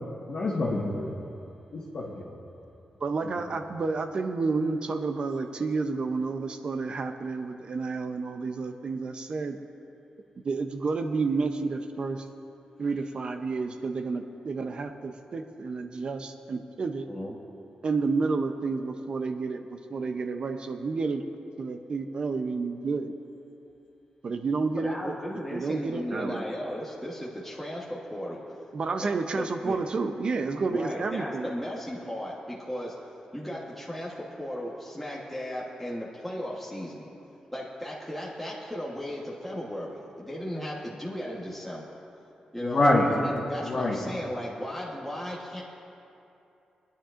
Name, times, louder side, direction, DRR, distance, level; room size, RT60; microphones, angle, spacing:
voice 1, 0.3-1.1 1.7-2.2 42.6-43.1 43.7-44.0, left 2 dB, 55° left, -8 dB, 1.5 m, -25 dB
voice 2, 3.0-9.6 10.4-12.3 12.8-17.1 17.8-21.2 21.6-23.1 24.2-25.2 25.5-26.4 28.7-31.5, right 4 dB, 45° right, 6 dB, 0.6 m, -30 dB
voice 3, 24.8-28.6 29.0-29.9 30.7-33.0 33.3-37.1 37.5-41.9 42.5-45.6, equal, 5° left, -6 dB, 1.2 m, -36 dB
25.0 x 10.0 x 2.5 m, 2.7 s
wide cardioid pair, 155°, 2 cm